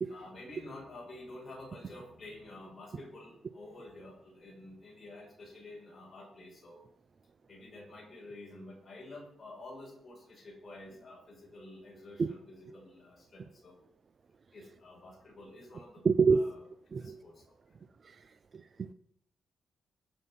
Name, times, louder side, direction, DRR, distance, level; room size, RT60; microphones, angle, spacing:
voice 1, 0.1-6.9 7.5-13.8 14.5-16.6 17.0-17.8, left 2 dB, 25° left, -3 dB, 6.1 m, -50 dB
voice 2, 16.0-16.4 16.9-17.2 18.0-18.2 18.5-18.9, right 5 dB, 35° right, 12 dB, 0.5 m, -27 dB
20.5 x 7.7 x 5.6 m, 0.71 s
wide cardioid pair, 170°, 0 cm